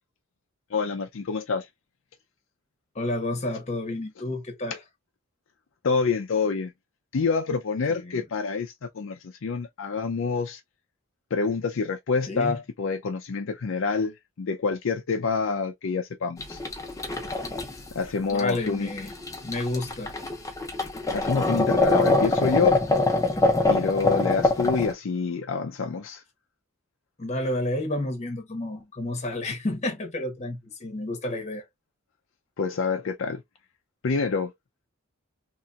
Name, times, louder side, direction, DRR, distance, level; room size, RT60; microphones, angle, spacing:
voice 1, 0.7-1.7 5.8-6.7 7.1-10.6 11.3-16.6 17.9-18.9 21.1-22.8 23.7-26.2 32.6-33.4 34.0-34.5, left 4 dB, 65° left, 0.5 m, -27 dB
voice 2, 2.9-4.8 7.9-8.2 12.3-12.6 18.2-19.1 19.4-20.2 27.2-31.6, left 1 dB, 30° left, 0.9 m, -30 dB
sound 1, 16.4-24.9, left 2 dB, 15° left, 0.6 m, -24 dB
3.0 x 2.8 x 2.3 m
head